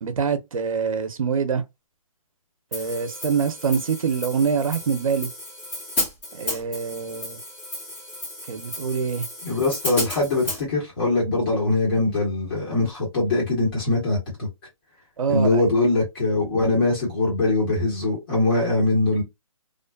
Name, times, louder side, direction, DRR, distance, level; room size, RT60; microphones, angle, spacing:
voice 1, 0.0-1.6 2.7-5.3 6.3-7.4 8.5-9.3 15.2-15.6, right 6 dB, 70° right, 0.6 m, -25 dB
Hi-hat, 2.7-10.6, left 1 dB, 15° left, 0.9 m, -33 dB
voice 2, 9.4-14.5 15.3-19.2, left 2 dB, 40° left, 1.3 m, -22 dB
2.5 x 2.4 x 2.2 m
hypercardioid pair, 160°, 18 cm